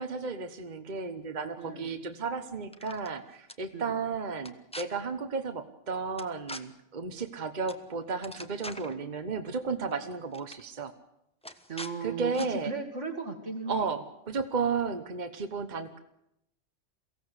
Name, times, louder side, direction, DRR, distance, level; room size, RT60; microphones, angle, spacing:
voice 1, 0.0-10.9 12.0-12.7 13.7-16.0, right 4 dB, 40° right, 7 dB, 1.2 m, -33 dB
sound 1, 2.6-3.1 3.5-3.6 4.4-4.8 6.2-6.6 7.7-7.8 8.1-8.9 9.9-10.0 10.3-10.6 11.4-11.9 12.3-12.5, left 1 dB, 5° left, 0.9 m, -42 dB
voice 2, 11.7-13.9, right 4 dB, 75° right, 4 dB, 2.8 m, -36 dB
23.0 x 16.0 x 8.1 m, 0.81 s
omnidirectional pair, 1.2 m